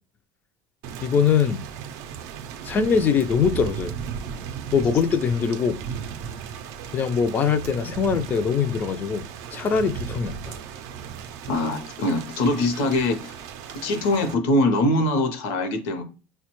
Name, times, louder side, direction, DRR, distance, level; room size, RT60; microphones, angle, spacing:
Thunder / Rain, 0.8-14.3, right 7 dB, 65° right, 0.4 m, -36 dB
voice 1, 1.0-1.6 2.6-3.9 4.7-5.8 6.9-9.2 9.5-10.6, left 6 dB, 35° left, 0.3 m, -22 dB
voice 2, 11.5-13.4 13.7-16.0, left 1 dB, 75° left, 0.7 m, -23 dB
4.2 x 2.2 x 2.9 m
supercardioid pair, 115°, 6 cm